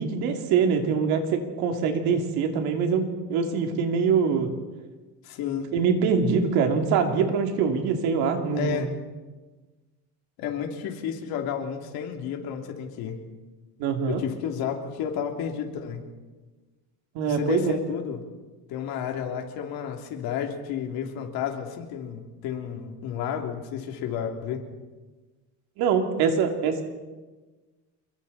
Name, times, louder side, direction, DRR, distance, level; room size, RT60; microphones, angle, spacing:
voice 1, 0.0-4.5 5.7-8.9 13.8-14.2 17.1-17.8 25.8-26.8, right 6 dB, 90° right, 4 dB, 3.1 m, -24 dB
voice 2, 5.2-5.7 8.5-8.9 10.4-13.2 14.1-16.1 17.3-18.2 18.7-24.6, left 8 dB, 80° left, 3 dB, 3.2 m, -31 dB
28.0 x 22.5 x 4.3 m, 1.3 s
cardioid pair, 135°, 36 cm